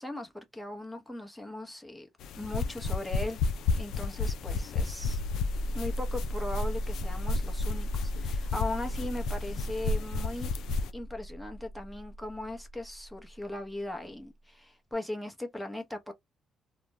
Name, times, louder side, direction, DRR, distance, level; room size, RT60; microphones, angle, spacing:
voice 1, 0.0-2.1 2.3-3.4 3.8-5.2 5.7-10.5 10.9-16.1, left 1 dB, 5° left, 0.9 m, -38 dB
sound 1, 2.2-10.9, left 4 dB, 80° left, 0.3 m, -33 dB
sound 2, 5.0-13.4 14.9-15.0, equal, 60° left, 0.9 m, -36 dB
2.4 x 2.2 x 3.0 m
cardioid pair, 90°, 0 cm